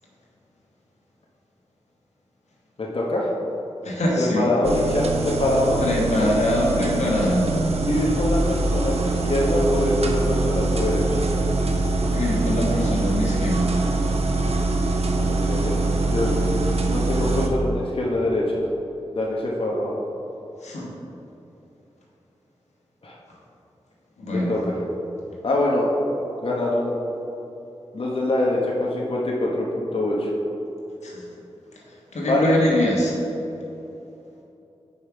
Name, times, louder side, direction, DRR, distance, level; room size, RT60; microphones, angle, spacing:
voice 1, 2.8-3.3 4.2-5.8 7.8-11.2 15.2-15.8 16.1-16.4 16.8-18.4 19.1-20.0 23.0-23.2 24.3-24.8 25.4-25.9 26.4-27.0 27.9-30.3 32.3-32.6, left 1 dB, 55° left, -4 dB, 1.0 m, -24 dB
voice 2, 3.8-4.5 5.8-7.5 12.1-13.8 20.6-20.9 24.2-24.5 31.0-31.2 32.1-33.2, left 1 dB, 80° left, -3 dB, 1.3 m, -23 dB
sound 1, 4.6-17.5, right 2 dB, 65° right, 0.7 m, -23 dB
5.5 x 5.1 x 4.6 m, 2.9 s
cardioid pair, 40°, 11 cm